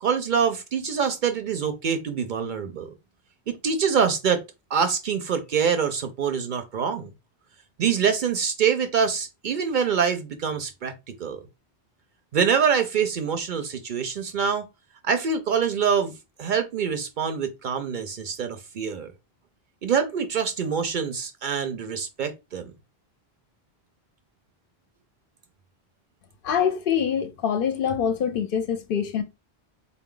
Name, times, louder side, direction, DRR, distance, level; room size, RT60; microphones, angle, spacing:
voice 1, 0.0-2.9 3.5-4.4 4.7-7.1 7.8-10.9 11.2-11.4 12.3-14.6 15.0-16.1 16.4-19.1 19.8-22.7, right 6 dB, 60° right, 0.6 m, -25 dB
voice 2, 26.4-29.2, left 8 dB, 65° left, 0.7 m, -25 dB
3.9 x 2.3 x 3.7 m
omnidirectional pair, 1.1 m